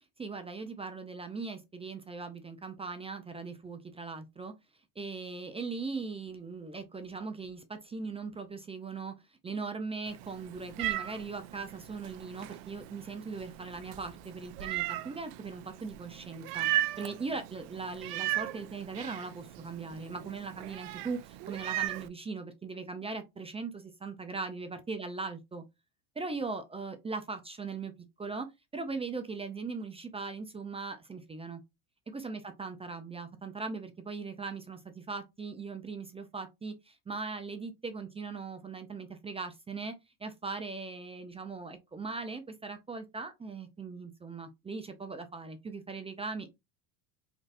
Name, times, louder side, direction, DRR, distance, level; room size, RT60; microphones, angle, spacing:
voice 1, 0.2-4.5 5.0-9.1 9.4-25.6 26.2-27.9 28.2-31.6 32.1-39.9 40.2-46.5, right 4 dB, 15° right, 0.4 m, -39 dB
Meow, 10.1-22.1, right 14 dB, 70° right, 0.6 m, -37 dB
3.9 x 3.2 x 2.6 m
supercardioid pair, 105°, 45 cm